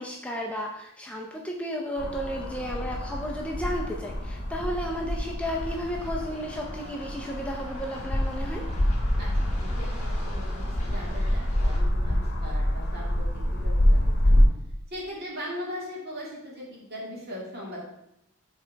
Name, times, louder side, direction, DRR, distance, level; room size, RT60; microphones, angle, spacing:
voice 1, 0.0-8.7, equal, 5° left, -1 dB, 0.5 m, -33 dB
sound 1, 2.0-14.5, equal, 55° left, 1.2 m, -26 dB
sound 2, 5.4-11.8, equal, 30° left, 1.4 m, -45 dB
voice 2, 9.2-14.4 14.9-17.8, equal, 50° right, -4 dB, 2.2 m, -39 dB
6.7 x 4.0 x 4.5 m, 0.85 s
head